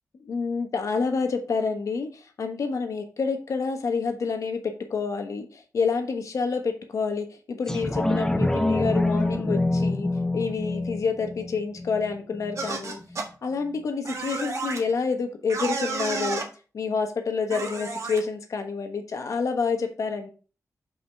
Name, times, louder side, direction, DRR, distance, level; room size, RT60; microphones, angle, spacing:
voice 1, 0.2-10.1 10.3-13.0 13.4-16.4 16.7-20.3, left 5 dB, 65° left, 5 dB, 1.3 m, -28 dB
sound 1, 7.7-12.7 13.1-13.2, left 2 dB, 10° left, 0.6 m, -26 dB
sound 2, 12.6-13.3 14.0-14.8 15.5-16.5 17.5-18.2, right 3 dB, 60° right, 1.6 m, -31 dB
5.8 x 5.1 x 4.8 m, 0.36 s
wide cardioid pair, 140°, 6 cm